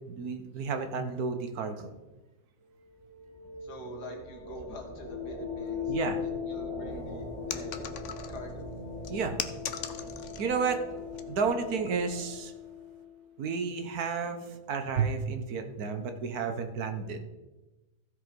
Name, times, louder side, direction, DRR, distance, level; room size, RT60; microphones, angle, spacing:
voice 1, 0.1-1.9 5.9-6.2 9.1-9.4 10.4-10.8 11.3-12.5 13.4-17.2, right 5 dB, 70° right, 7 dB, 1.5 m, -31 dB
sound 1, 2.7-13.2, left 5 dB, 15° right, 2.3 m, -39 dB
voice 2, 3.6-6.0 6.4-7.8 8.3-8.7, left 1 dB, 90° left, 2 dB, 2.3 m, -45 dB
sound 2, 7.5-8.5 9.0-10.6 10.9-11.2 11.9-12.1, left 8 dB, 60° left, 0.9 m, -38 dB
15.0 x 5.2 x 5.2 m, 1.1 s
omnidirectional pair, 1.7 m